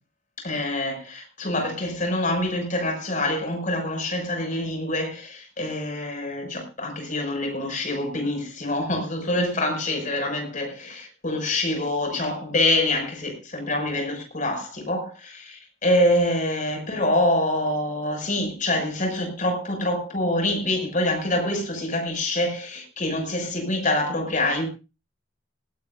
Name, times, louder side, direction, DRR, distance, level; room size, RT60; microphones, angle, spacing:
voice 1, 0.4-24.7, left 1 dB, 40° left, 6.1 m, -25 dB
19.0 x 17.0 x 2.6 m
head